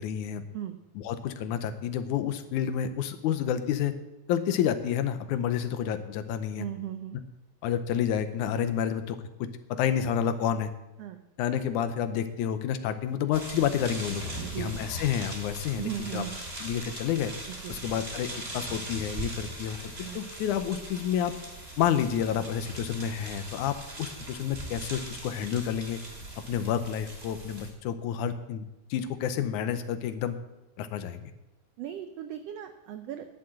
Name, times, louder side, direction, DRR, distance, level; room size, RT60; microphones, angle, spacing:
voice 1, 0.0-0.4 1.0-4.0 4.3-6.7 7.6-10.7 11.4-14.2 14.6-16.2 16.6-17.3 17.7-19.8 20.2-21.3 21.8-26.0 26.4-28.7 28.9-30.4 30.8-31.3, left 9 dB, 75° left, 10 dB, 2.1 m, -29 dB
voice 2, 6.6-7.2 11.0-11.2 14.4-14.7 15.8-16.4 17.6-17.8 20.0-20.3 31.8-33.3, right 11 dB, 85° right, 7 dB, 1.4 m, -37 dB
sound 1, 13.3-27.7, right 1 dB, 20° right, 2.7 m, -40 dB
11.0 x 7.7 x 7.7 m, 0.97 s
omnidirectional pair, 3.6 m